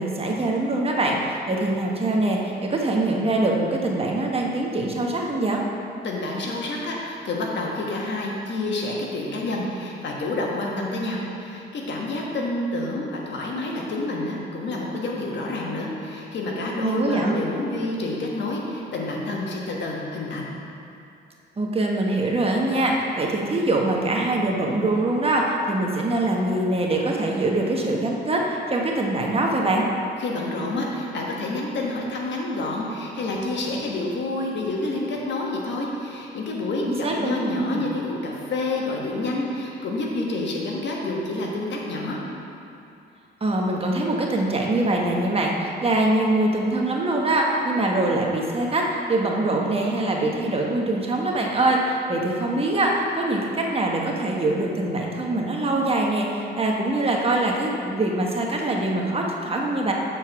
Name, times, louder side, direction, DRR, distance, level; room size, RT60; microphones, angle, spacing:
voice 1, 0.0-5.6 16.8-17.3 21.6-29.8 36.8-37.8 43.4-59.9, right 2 dB, 30° right, -1 dB, 1.1 m, -23 dB
voice 2, 6.0-20.5 30.2-42.2, left 2 dB, 65° left, -2 dB, 1.4 m, -28 dB
7.5 x 4.4 x 5.8 m, 2.6 s
cardioid pair, 90°, 20 cm